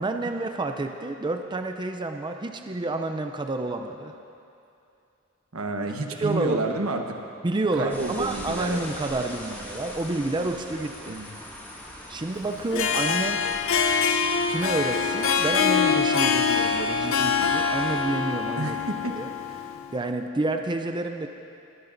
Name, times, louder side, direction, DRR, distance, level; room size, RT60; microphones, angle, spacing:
voice 1, 0.0-4.1 6.2-6.6 7.4-11.2 12.1-13.4 14.5-18.8 19.1-19.3 19.9-21.3, right 2 dB, 20° right, 5 dB, 0.5 m, -29 dB
voice 2, 5.5-7.0 7.8-8.8 11.1-11.3 18.6-19.1, right 2 dB, 85° right, 3 dB, 1.2 m, -29 dB
sound 1, 7.9-18.0, left 1 dB, 10° left, 2.0 m, -41 dB
Harp, 12.6-19.9, left 6 dB, 70° left, 0.7 m, -24 dB
22.0 x 13.5 x 2.6 m, 2.6 s
head